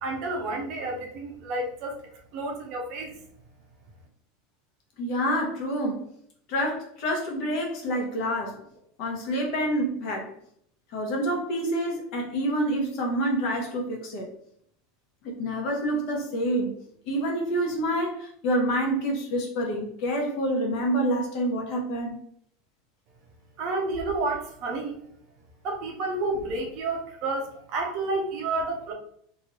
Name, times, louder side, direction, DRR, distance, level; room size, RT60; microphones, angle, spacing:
voice 1, 0.0-1.9 2.3-3.1 23.6-25.0 25.6-28.9, right 2 dB, 40° right, 1 dB, 0.7 m, -30 dB
voice 2, 5.0-6.0 6.5-8.6 9.0-10.3 10.9-14.3 15.2-16.7 17.1-22.2, right 1 dB, 45° left, 0 dB, 0.8 m, -27 dB
2.9 x 2.6 x 3.0 m, 0.67 s
supercardioid pair, 175°, 0 cm